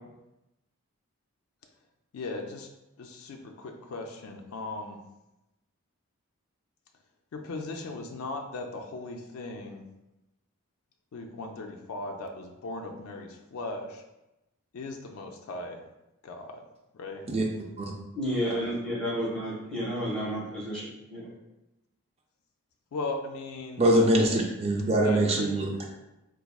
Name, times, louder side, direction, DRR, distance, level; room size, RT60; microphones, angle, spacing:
voice 1, 2.1-2.7 3.0-5.0 7.3-9.9 11.1-14.0 14.7-15.8 16.2-16.6 16.9-17.3 22.9-23.9 25.0-25.5, left 2 dB, 80° left, 3 dB, 0.4 m, -37 dB
voice 2, 18.1-21.3, equal, 5° left, -10 dB, 1.2 m, -31 dB
voice 3, 23.8-25.9, right 1 dB, 30° right, 1 dB, 0.3 m, -23 dB
4.0 x 2.5 x 2.3 m, 0.95 s
head